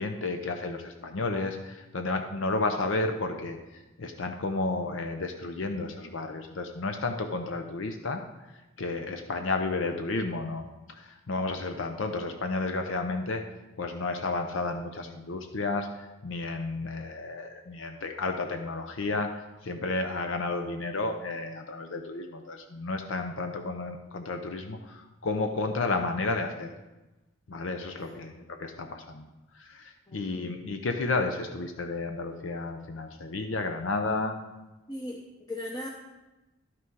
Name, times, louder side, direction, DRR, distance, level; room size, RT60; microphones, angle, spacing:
voice 1, 0.0-8.2 8.8-13.4 13.8-26.7 27.5-29.3 29.5-34.4, left 3 dB, 80° left, 6 dB, 0.7 m, -32 dB
voice 2, 27.9-28.3 30.1-30.5 34.9-35.9, left 1 dB, 20° left, -1 dB, 0.7 m, -39 dB
11.5 x 6.0 x 4.7 m, 1.1 s
head